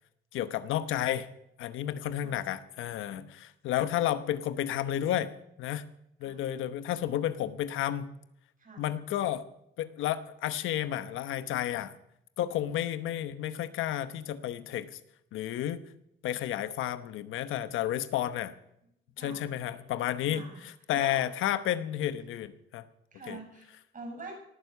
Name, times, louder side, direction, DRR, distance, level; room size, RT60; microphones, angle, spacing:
voice 1, 0.3-1.3 1.6-5.3 5.6-5.9 6.2-8.1 8.8-9.5 9.8-12.0 12.4-15.0 15.3-15.8 16.2-18.5 19.2-22.8 23.3-23.4, left 11 dB, 85° left, 13 dB, 1.0 m, -31 dB
voice 2, 19.2-19.5 20.2-21.2 23.1-24.3, right 2 dB, 40° right, 3 dB, 7.3 m, -45 dB
18.5 x 9.4 x 6.7 m, 0.79 s
cardioid pair, 90°, 20 cm